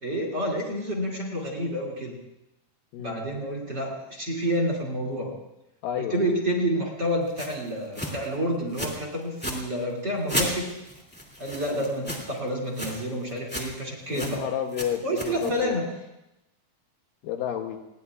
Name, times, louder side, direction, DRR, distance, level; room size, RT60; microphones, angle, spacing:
voice 1, 0.0-2.2 3.0-5.3 6.0-10.7 11.4-14.4 15.0-15.9, equal, 30° right, 0 dB, 2.5 m, -29 dB
voice 2, 5.8-6.3 11.7-11.8 14.1-15.8 17.2-17.8, left 9 dB, 75° left, 4 dB, 2.3 m, -31 dB
sound 1, 7.4-7.5 7.9-8.3 8.7-9.0 9.3-9.6 10.3-12.4 12.7-13.0 13.3-13.8 14.1-14.4 14.7-15.6, equal, 5° left, 1.5 m, -33 dB
29.5 x 19.5 x 2.4 m, 0.91 s
omnidirectional pair, 4.4 m